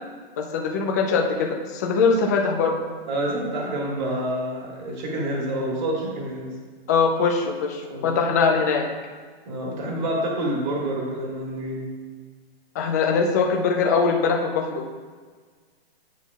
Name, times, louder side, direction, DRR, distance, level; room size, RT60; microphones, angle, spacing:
voice 1, 0.4-2.8 6.9-8.9 12.7-14.8, left 5 dB, 20° left, 2 dB, 0.4 m, -22 dB
voice 2, 3.1-6.5 7.9-8.1 9.5-11.8, right 1 dB, 50° right, -2 dB, 1.9 m, -28 dB
9.1 x 5.9 x 2.4 m, 1.5 s
hypercardioid pair, 155°, 30 cm